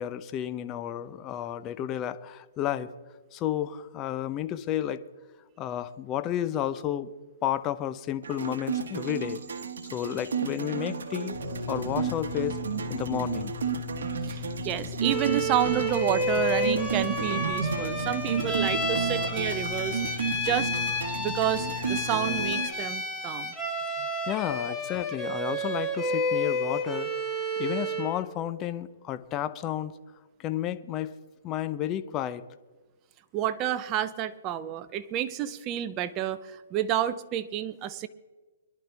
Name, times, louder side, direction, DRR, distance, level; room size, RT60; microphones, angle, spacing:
voice 1, 0.0-2.9 3.3-5.0 5.6-7.1 7.4-9.4 9.9-11.3 11.7-12.6 12.9-13.6 24.3-27.1 27.6-29.9 30.4-31.1 31.4-32.4, left 11 dB, 25° left, 12 dB, 0.7 m, -31 dB
sound 1, 8.2-22.7, right 6 dB, 75° right, 1.5 m, -33 dB
sound 2, 11.3-22.4, left 12 dB, 55° left, 4.0 m, -40 dB
voice 2, 14.3-20.0 20.4-20.7 21.2-23.5 33.3-38.1, right 11 dB, 25° right, 12 dB, 0.7 m, -30 dB
Bowed string instrument, 15.0-28.2, equal, 5° right, 1.9 m, -30 dB
23.0 x 11.5 x 3.5 m, 1.3 s
hypercardioid pair, 145°, 0 cm